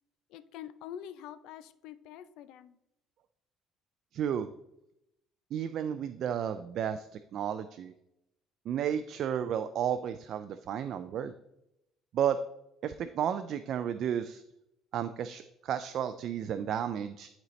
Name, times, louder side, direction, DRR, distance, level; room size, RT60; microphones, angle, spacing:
voice 1, 0.3-2.8, left 10 dB, 75° left, 12 dB, 0.5 m, -45 dB
voice 2, 4.1-4.5 5.5-7.1 7.3-7.9 8.7-11.3 12.1-12.4 12.8-14.4 14.9-17.3, right 9 dB, 55° right, 10 dB, 0.3 m, -32 dB
11.5 x 4.1 x 3.2 m, 0.83 s
cardioid pair, 135°, 0 cm